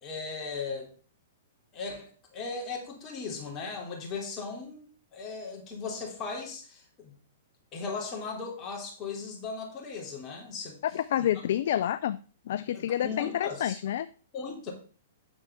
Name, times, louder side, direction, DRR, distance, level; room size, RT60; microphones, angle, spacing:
voice 1, 0.0-0.9 1.7-4.9 5.1-7.1 7.7-10.8 11.2-11.3 12.7-13.8 14.3-14.7, left 4 dB, 30° left, 1 dB, 2.9 m, -37 dB
voice 2, 10.9-12.2 12.5-14.1, left 11 dB, 65° left, 14 dB, 0.4 m, -28 dB
8.9 x 6.8 x 3.6 m, 0.39 s
hypercardioid pair, 125°, 0 cm